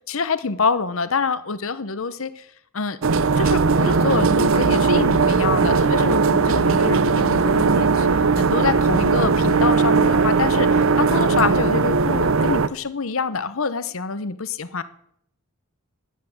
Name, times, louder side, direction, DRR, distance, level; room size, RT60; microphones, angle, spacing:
voice 1, 0.1-2.5 2.7-3.0 3.4-14.8, left 4 dB, 65° left, 13 dB, 0.9 m, -26 dB
sound 1, 3.0-12.7, right 4 dB, 65° right, 0.7 m, -18 dB
14.0 x 10.5 x 7.3 m, 0.70 s
head